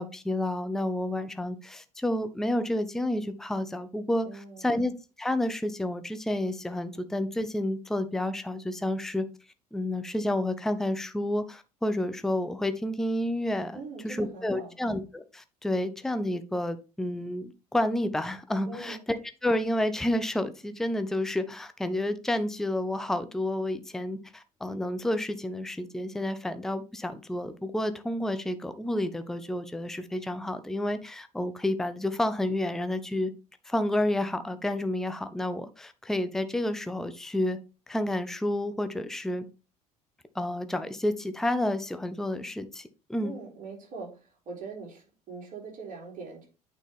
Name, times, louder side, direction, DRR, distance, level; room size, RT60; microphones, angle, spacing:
voice 1, 0.0-4.9 5.2-9.2 9.7-19.2 19.4-33.3 33.7-37.6 37.9-39.5 40.3-43.3, left 1 dB, ahead, 10 dB, 0.6 m, -30 dB
voice 2, 4.2-4.7 13.7-14.7 18.6-19.0 43.2-46.5, right 4 dB, 45° right, -1 dB, 3.4 m, -42 dB
9.0 x 4.3 x 3.5 m, 0.31 s
figure-of-eight pair, 65°, 20 cm